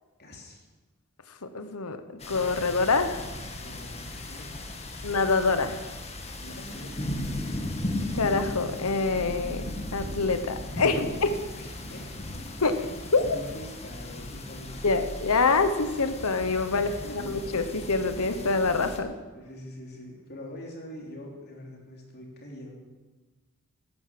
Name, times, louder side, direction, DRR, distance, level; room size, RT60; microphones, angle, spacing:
voice 1, 0.2-0.7 3.6-5.0 6.4-7.9 10.7-11.2 11.6-12.0 13.2-14.9 16.7-17.3 19.3-22.7, left 1 dB, 50° left, -1 dB, 3.4 m, -44 dB
voice 2, 1.4-2.0 2.3-3.2 5.0-5.8 8.1-9.7 9.9-11.3 12.6-12.8 13.1-13.4 14.8-16.9 17.3-19.1, left 4 dB, 85° left, 9 dB, 1.0 m, -25 dB
sound 1, 2.2-19.0, left 1 dB, 30° left, 1.7 m, -37 dB
12.0 x 11.0 x 7.6 m, 1.3 s
head